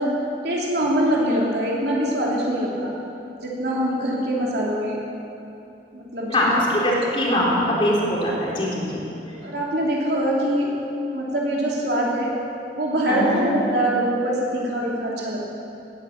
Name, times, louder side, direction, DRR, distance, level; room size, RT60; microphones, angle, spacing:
voice 1, 0.0-2.9 3.4-5.0 5.9-7.0 8.9-10.7 11.1-12.3 12.7-15.6, right 1 dB, 65° right, -4 dB, 3.1 m, -24 dB
voice 2, 6.3-9.0 13.1-13.4, equal, 30° left, -4 dB, 3.2 m, -22 dB
17.5 x 9.6 x 7.2 m, 2.8 s
head